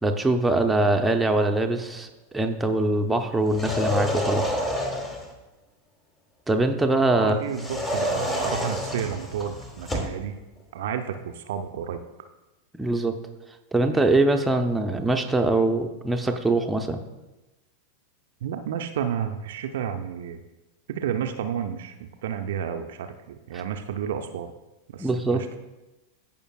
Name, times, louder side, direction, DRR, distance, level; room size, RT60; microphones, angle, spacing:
voice 1, 0.0-4.6 6.5-7.4 12.7-13.1 13.7-17.0 25.0-25.4, right 2 dB, 5° right, 4 dB, 0.7 m, -23 dB
sound 1, 3.5-5.3 7.5-10.2, left 1 dB, 15° left, 1.2 m, -28 dB
voice 2, 7.1-10.4 10.7-12.0 18.4-20.4 20.9-21.9 22.2-24.5 24.9-25.6, right 8 dB, 55° right, 6 dB, 0.5 m, -31 dB
15.0 x 5.2 x 2.4 m, 1.0 s
figure-of-eight pair, 90°, 0 cm